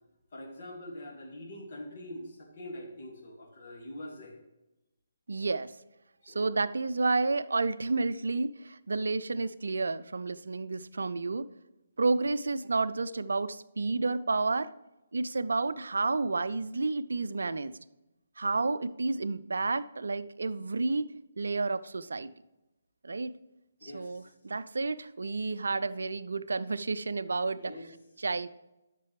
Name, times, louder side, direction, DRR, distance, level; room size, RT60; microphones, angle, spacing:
voice 1, 0.3-4.4 6.2-6.6 23.8-24.3 27.5-27.9, left 1 dB, 40° left, 0 dB, 2.3 m, -44 dB
voice 2, 5.3-5.7 6.3-11.5 12.0-14.7 15.1-17.7 18.4-21.1 21.4-22.3 23.0-23.3 23.8-27.8 28.2-28.5, right 3 dB, 65° right, 14 dB, 0.5 m, -30 dB
11.5 x 6.7 x 3.3 m, 0.98 s
figure-of-eight pair, 140°, 0 cm